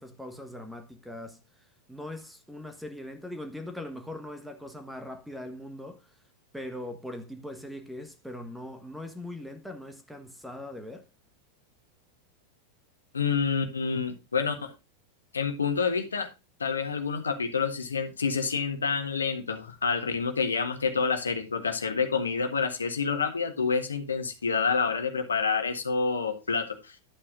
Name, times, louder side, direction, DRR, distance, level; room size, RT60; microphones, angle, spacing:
voice 1, 0.0-1.4 1.9-6.1 6.5-11.1, left 1 dB, ahead, 1.3 m, -40 dB
voice 2, 13.1-14.7 15.3-16.3 16.6-27.0, left 5 dB, 75° left, 1.5 m, -28 dB
11.5 x 8.6 x 2.5 m
figure-of-eight pair, 90°, 0 cm